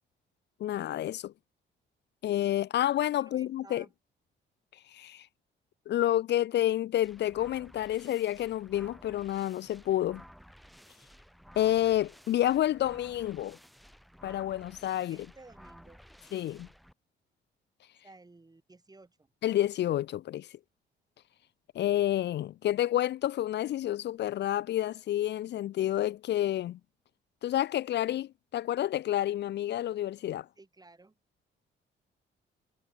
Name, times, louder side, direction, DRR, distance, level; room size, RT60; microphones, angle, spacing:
voice 1, 0.6-1.3 2.2-3.8 4.9-5.3 5.9-10.2 11.6-13.6 14.2-15.2 16.3-16.7 19.4-20.5 21.7-26.8 27.4-30.5, left 13 dB, 60° left, 0.5 m, -29 dB
voice 2, 3.2-3.9 15.1-16.0 18.0-19.3 30.6-31.2, right 3 dB, 20° right, 6.0 m, -55 dB
sound 1, 7.0-16.9, equal, ahead, 2.2 m, -54 dB
cardioid pair, 90°, 20 cm